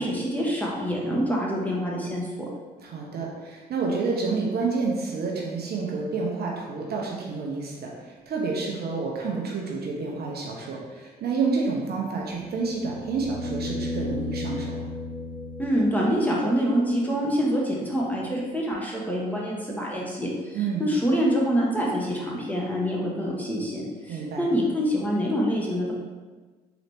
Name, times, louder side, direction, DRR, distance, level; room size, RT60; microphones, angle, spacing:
voice 1, 0.0-2.5 15.6-25.9, equal, 10° left, -4 dB, 1.2 m, -26 dB
voice 2, 2.8-14.8 20.5-20.9 24.1-24.5, right 4 dB, 50° right, -2 dB, 0.8 m, -29 dB
sound 1, 12.2-16.3 18.7-18.8, left 2 dB, 25° right, 1.4 m, -34 dB
3.9 x 3.0 x 3.4 m, 1.3 s
hypercardioid pair, 50°, 20 cm